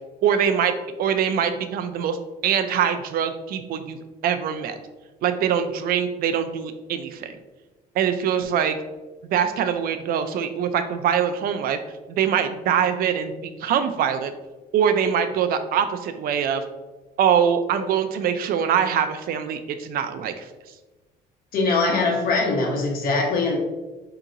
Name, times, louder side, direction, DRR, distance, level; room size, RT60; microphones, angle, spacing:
voice 1, 0.2-0.7 1.0-2.2 2.4-4.0 4.2-4.8 5.2-7.4 7.9-8.8 9.3-11.8 12.1-14.3 14.7-16.6 17.2-20.5, right 8 dB, 60° right, 9 dB, 0.4 m, -23 dB
voice 2, 21.5-23.6, left 3 dB, 60° left, -1 dB, 1.0 m, -22 dB
4.6 x 2.8 x 2.5 m, 1.2 s
cardioid pair, 110°, 17 cm